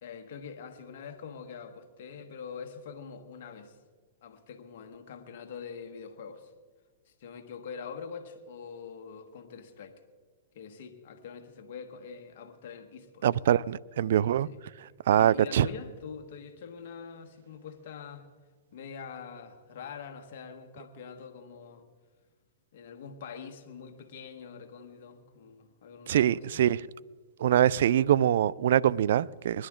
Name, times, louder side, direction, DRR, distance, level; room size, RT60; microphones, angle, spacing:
voice 1, 0.0-3.8 4.2-6.5 7.1-10.0 10.5-13.3 13.5-13.6 14.4-14.6 15.2-18.3 18.7-21.8 22.7-26.6, left 6 dB, 60° left, 5 dB, 1.4 m, -44 dB
voice 2, 13.2-14.5 15.1-15.7 26.1-26.8 27.4-29.7, right 10 dB, 70° right, 22 dB, 0.3 m, -24 dB
21.0 x 11.0 x 3.7 m, 1.5 s
hypercardioid pair, 120°, 0 cm